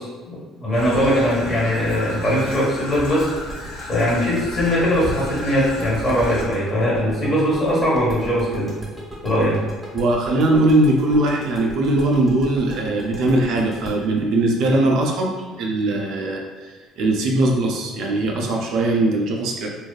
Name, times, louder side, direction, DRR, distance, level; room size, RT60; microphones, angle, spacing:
voice 1, 0.0-3.3 3.9-8.7 9.2-9.6, equal, 40° left, -5 dB, 1.2 m, -20 dB
Traffic noise roadway noise / Trickle dribble, 0.7-6.5, left 1 dB, 90° left, 0.6 m, -33 dB
sound 1, 2.9-15.7, equal, 15° right, 0.9 m, -37 dB
voice 2, 9.9-19.7, right 2 dB, 70° right, 1 dB, 0.4 m, -20 dB
2.6 x 2.3 x 2.3 m, 1.3 s
supercardioid pair, 70°, 0 cm